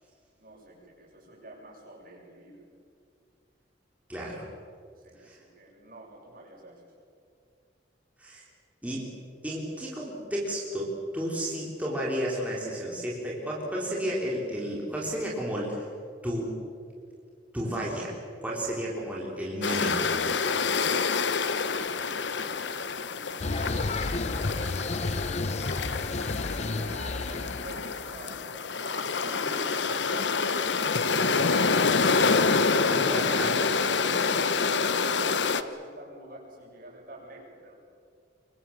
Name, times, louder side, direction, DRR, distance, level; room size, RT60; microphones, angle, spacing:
voice 1, 0.4-2.6 4.9-6.9 22.1-22.6 23.0-24.3 24.6-24.8 25.4-26.2 26.7-31.7 33.8-37.8, right 1 dB, 55° right, -2 dB, 7.5 m, -48 dB
voice 2, 4.1-4.4 5.2-5.4 8.2-8.4 8.8-9.1 9.4-15.9 16.2-16.6 17.5-18.1 18.4-20.1 32.9-33.8, equal, 10° right, -4 dB, 4.0 m, -32 dB
sound 1, 19.6-35.6, left 4 dB, 85° left, 1.0 m, -27 dB
sound 2, 23.4-28.4, left 3 dB, 40° left, 0.7 m, -32 dB
26.0 x 23.5 x 7.3 m, 2.3 s
head